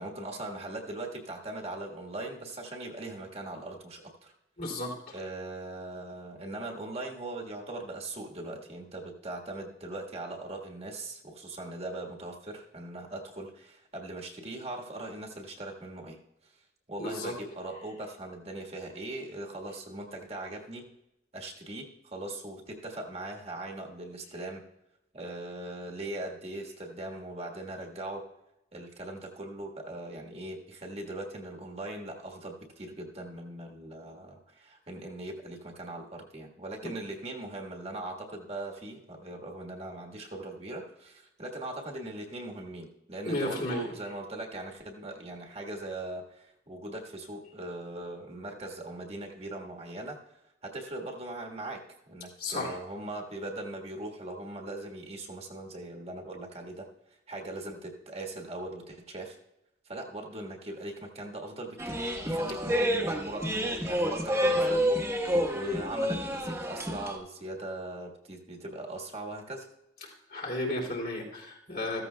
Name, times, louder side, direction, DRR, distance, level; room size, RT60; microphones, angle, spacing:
voice 1, 0.0-4.3 5.1-16.2 16.4-16.6 16.9-20.9 21.3-24.6 25.1-28.3 28.7-59.4 59.8-69.7, right 2 dB, 35° right, 0 dB, 1.5 m, -40 dB
voice 2, 4.6-5.1 17.0-17.3 43.2-43.9 52.4-52.8 70.0-72.0, left 1 dB, 55° left, 0 dB, 2.9 m, -33 dB
sound 1, 61.8-67.2, equal, 15° right, 1.2 m, -29 dB
14.5 x 14.0 x 2.2 m, 0.89 s
head